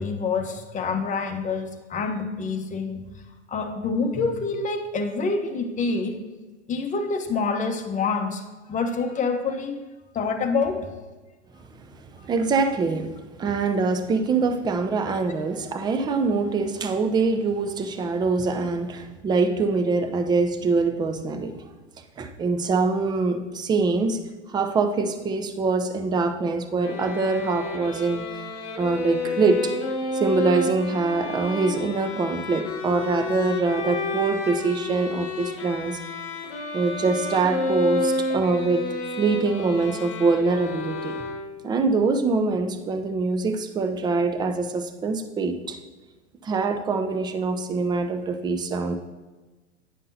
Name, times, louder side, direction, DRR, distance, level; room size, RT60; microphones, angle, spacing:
voice 1, 0.0-3.0 3.5-6.2 6.7-8.4 8.7-9.8 10.1-10.9, left 4 dB, 20° left, 4 dB, 0.9 m, -26 dB
voice 2, 12.2-13.1 13.4-21.7 22.2-24.2 24.5-28.2 28.8-29.7 30.1-36.0 36.7-38.8 39.2-41.1 41.6-45.8 46.4-49.0, right 4 dB, 10° right, 7 dB, 0.4 m, -24 dB
sound 1, 26.8-41.8, left 2 dB, 40° left, 1.2 m, -30 dB
10.0 x 5.4 x 2.7 m, 1.2 s
hypercardioid pair, 100°, 36 cm